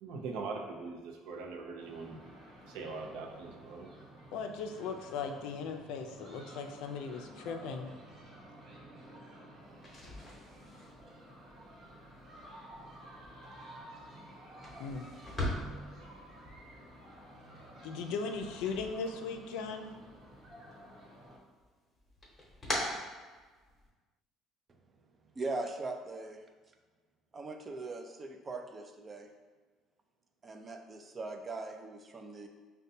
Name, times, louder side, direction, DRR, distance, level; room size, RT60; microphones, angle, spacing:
voice 1, 0.0-2.2 2.7-3.9, right 4 dB, 90° right, 2 dB, 0.5 m, -41 dB
sound 1, 1.8-21.4, right 1 dB, 50° right, 1.1 m, -52 dB
voice 2, 4.3-7.9 14.8-15.1 17.8-19.9, left 5 dB, 80° left, 5 dB, 0.4 m, -38 dB
sound 2, 9.7-19.7 20.0-20.9 21.3-23.9, left 1 dB, 20° left, 0.9 m, -42 dB
voice 3, 25.4-26.4 27.3-29.3 30.4-32.5, right 3 dB, 25° right, 5 dB, 0.3 m, -40 dB
5.2 x 2.1 x 2.7 m, 1.4 s
cardioid pair, 130°, 0 cm